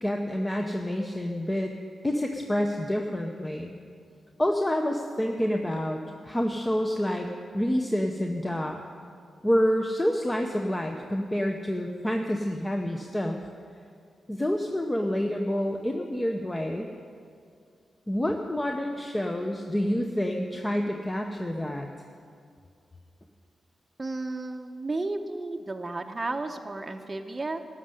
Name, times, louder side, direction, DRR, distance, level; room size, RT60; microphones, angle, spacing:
voice 1, 0.0-1.7 2.0-3.7 4.4-7.3 7.5-8.8 9.4-13.4 14.3-16.9 18.1-21.9, equal, 15° left, 2 dB, 0.7 m, -28 dB
voice 2, 24.0-27.6, right 2 dB, 25° right, 3 dB, 0.8 m, -33 dB
13.0 x 6.5 x 9.7 m, 2.3 s
cardioid pair, 85°, 0 cm